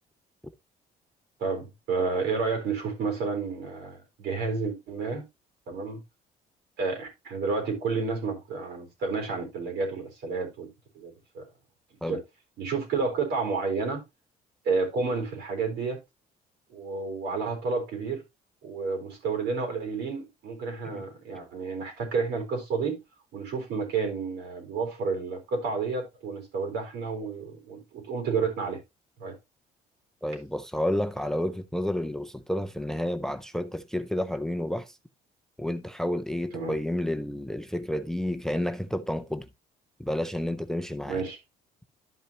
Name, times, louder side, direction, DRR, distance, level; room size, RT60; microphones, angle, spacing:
voice 1, 1.4-5.2 5.7-6.0 6.8-10.7 10.9-11.4 12.0-12.2 12.6-14.0 14.6-16.0 16.7-18.2 18.6-23.0 23.3-28.8 29.2-29.3 36.5-36.7 41.1-41.4, right 4 dB, 80° right, 4.1 m, -30 dB
voice 2, 30.2-35.0 35.6-39.5 40.0-41.2, left 1 dB, 5° left, 0.5 m, -30 dB
12.0 x 5.4 x 2.9 m
cardioid pair, 110°, 17 cm